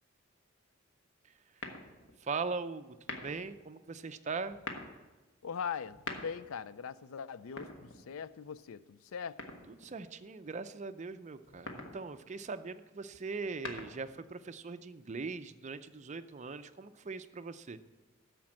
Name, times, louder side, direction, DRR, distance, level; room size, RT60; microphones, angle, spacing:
sound 1, 1.6-2.2 3.0-3.5 4.4-5.0 5.8-6.6 7.4-8.3 9.4-10.0 11.4-12.0 13.3-14.2, left 2 dB, 65° left, 1.4 m, -44 dB
voice 1, 2.2-4.6 9.7-17.8, right 4 dB, 35° right, 0.5 m, -40 dB
voice 2, 5.4-9.4, left 6 dB, 85° left, 0.4 m, -41 dB
13.0 x 5.2 x 7.5 m
head